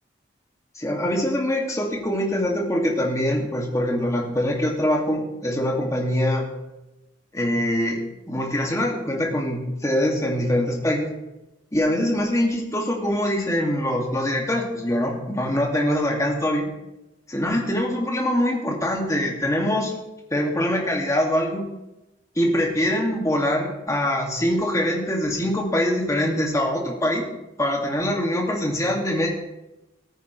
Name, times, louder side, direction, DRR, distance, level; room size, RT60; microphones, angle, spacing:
voice 1, 0.8-6.5 7.3-8.0 8.3-11.1 11.7-16.7 17.3-19.9 20.3-21.6 22.4-27.2 27.6-29.3, left 1 dB, 15° left, 0 dB, 2.1 m, -23 dB
18.5 x 9.1 x 3.2 m, 0.99 s
head